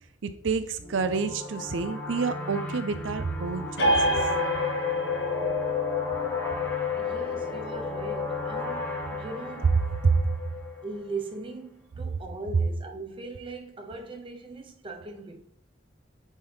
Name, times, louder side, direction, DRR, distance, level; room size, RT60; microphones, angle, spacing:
voice 1, 0.2-4.3 10.0-10.2, right 4 dB, 85° right, 0.5 m, -28 dB
sound 1, 0.8-11.1, left 1 dB, 10° left, 1.2 m, -36 dB
sound 2, 3.8-11.0, left 3 dB, 65° left, 1.6 m, -29 dB
voice 2, 6.9-9.8 10.8-15.4, right 3 dB, 30° right, 0.9 m, -39 dB
9.1 x 4.2 x 3.5 m
head